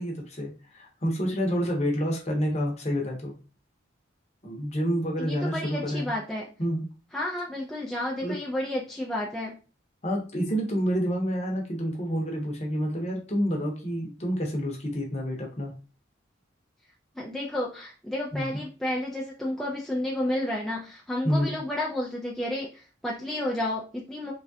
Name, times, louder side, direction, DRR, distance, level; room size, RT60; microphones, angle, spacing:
voice 1, 0.0-3.3 4.4-6.1 6.6-6.8 8.2-8.4 10.0-15.7 18.3-18.6 21.2-21.5, equal, 35° left, 0 dB, 0.7 m, -28 dB
voice 2, 5.2-6.5 7.1-9.5 17.2-24.3, left 1 dB, ahead, -4 dB, 0.3 m, -31 dB
3.1 x 2.3 x 2.6 m, 0.35 s
head